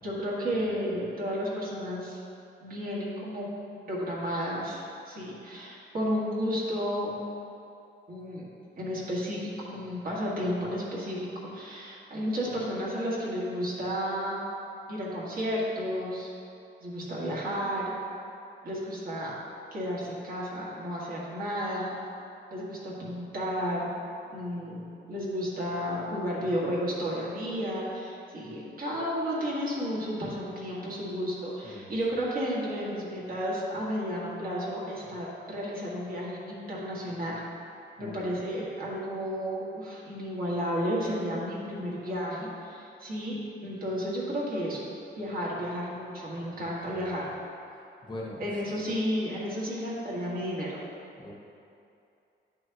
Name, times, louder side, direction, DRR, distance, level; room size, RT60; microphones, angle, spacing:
voice 1, 0.0-2.2 2.6-3.5 3.8-7.2 8.1-8.5 8.7-14.5 14.9-16.3 16.8-17.9 18.6-19.3 19.7-22.0 22.5-23.9 24.3-37.4 38.0-44.8 45.2-47.3 48.4-50.8, equal, 50° right, -6 dB, 1.7 m, -32 dB
voice 2, 31.6-32.0 38.0-38.3 46.4-47.2 48.0-48.8 51.2-51.3, left 1 dB, 25° left, -4 dB, 0.9 m, -43 dB
10.5 x 6.2 x 2.9 m, 2.6 s
wide cardioid pair, 180°, 19 cm